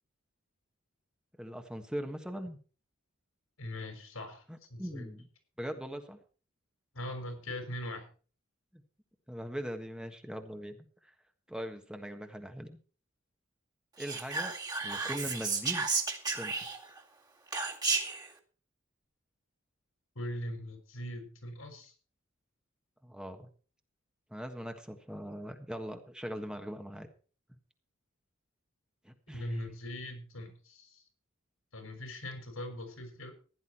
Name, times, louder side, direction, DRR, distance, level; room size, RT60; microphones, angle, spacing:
voice 1, 1.4-2.6 4.5-5.3 5.6-6.2 8.7-8.8 9.3-11.1 11.5-12.8 14.0-14.5 14.8-15.9 16.3-16.8 23.0-23.5 24.3-27.1 29.0-29.6, equal, 5° right, 6 dB, 1.5 m, -41 dB
voice 2, 3.6-4.4 4.7-5.1 6.9-8.1 20.1-21.9 29.3-31.0 31.7-33.3, left 1 dB, 85° left, 5 dB, 5.7 m, -41 dB
Whispering, 14.0-17.0 17.5-18.3, right 4 dB, 20° right, 2.2 m, -33 dB
15.5 x 11.0 x 4.4 m, 0.38 s
head